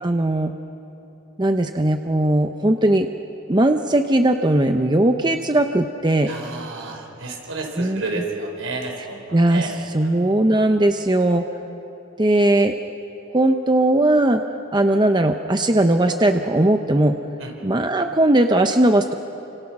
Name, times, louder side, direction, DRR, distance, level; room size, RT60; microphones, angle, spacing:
voice 1, 0.0-0.5 1.4-3.1 3.5-6.3 7.8-8.0 9.3-11.4 12.2-12.8 13.3-14.4 14.7-17.2 17.6-19.1, right 1 dB, 20° right, 6 dB, 0.8 m, -18 dB
voice 2, 6.3-9.7 10.0-10.3 17.4-17.5, right 3 dB, 80° right, 1 dB, 4.8 m, -31 dB
29.5 x 26.5 x 6.1 m, 2.9 s
head